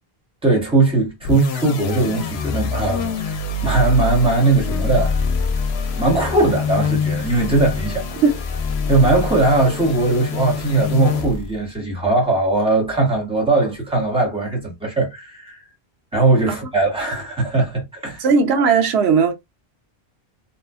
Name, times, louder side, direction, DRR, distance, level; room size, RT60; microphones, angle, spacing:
voice 1, 0.4-5.2 6.0-8.2 8.9-15.6 16.1-18.3, right 2 dB, 5° right, 1.1 m, -19 dB
sound 1, 1.2-11.6, left 4 dB, 80° left, 0.8 m, -25 dB
voice 2, 18.2-19.3, right 5 dB, 85° right, 0.9 m, -16 dB
2.8 x 2.3 x 2.3 m
omnidirectional pair, 1.1 m